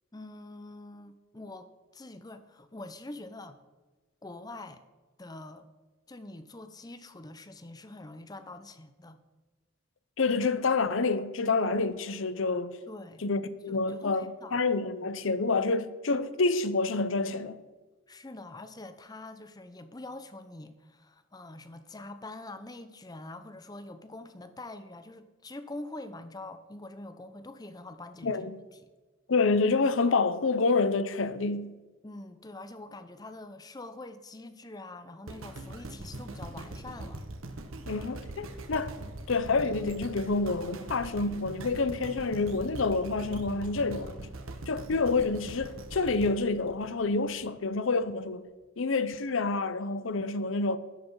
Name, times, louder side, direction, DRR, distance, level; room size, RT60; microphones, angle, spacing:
voice 1, 0.1-3.6 4.2-4.8 5.2-5.7 6.1-9.2 12.9-13.2 13.7-14.6 18.1-28.5 28.8-28.9 32.0-37.3 44.8-44.9, left 2 dB, 20° left, 0.6 m, -45 dB
voice 2, 10.2-12.8 13.2-17.6 28.2-28.6 29.3-31.8 37.9-38.9 39.3-44.2 44.7-48.5 48.8-50.8, left 3 dB, 70° left, 0.7 m, -28 dB
sound 1, 35.3-47.5 48.0-48.1, right 2 dB, 80° right, 1.3 m, -42 dB
13.5 x 9.6 x 4.7 m
head